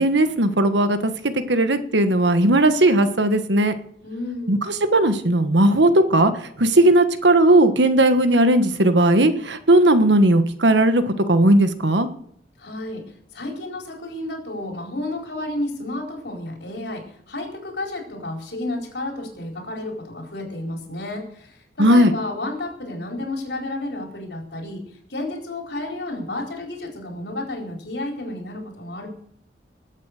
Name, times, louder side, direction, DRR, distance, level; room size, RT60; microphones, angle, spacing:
voice 1, 0.0-3.7 4.5-6.3 6.6-12.1 21.8-22.1, right 1 dB, 80° right, 10 dB, 1.4 m, -17 dB
voice 2, 4.0-4.6 12.6-13.1 13.3-24.8 25.1-29.1, left 2 dB, 70° left, 1 dB, 4.4 m, -31 dB
19.5 x 8.4 x 6.6 m, 0.66 s
head